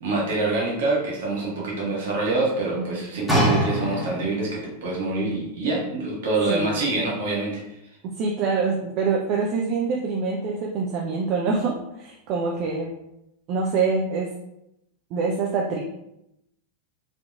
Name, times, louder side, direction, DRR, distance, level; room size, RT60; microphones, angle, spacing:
voice 1, 0.0-7.6, right 2 dB, 60° right, -4 dB, 1.3 m, -26 dB
sound 1, 3.3-4.6 5.3-5.4, right 1 dB, 5° left, 1.2 m, -23 dB
voice 2, 8.0-12.9 13.5-14.3 15.1-15.8, right 4 dB, 40° right, -1 dB, 0.4 m, -25 dB
4.2 x 2.8 x 2.4 m, 0.84 s
figure-of-eight pair, 90°, 0 cm